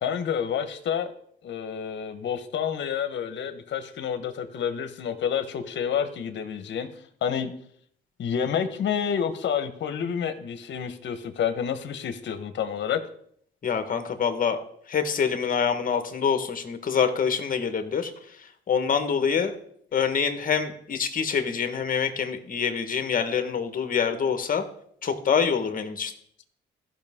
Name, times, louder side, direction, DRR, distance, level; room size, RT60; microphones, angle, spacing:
voice 1, 0.0-1.1 1.4-6.9 7.2-7.5 8.2-13.0, left 8 dB, 65° left, 10 dB, 1.2 m, -29 dB
voice 2, 13.6-14.6 14.9-18.1 18.4-19.6 19.9-24.6 25.0-26.1, left 6 dB, 45° left, 8 dB, 1.4 m, -26 dB
15.0 x 5.8 x 3.7 m, 0.66 s
cardioid pair, 90°, 20 cm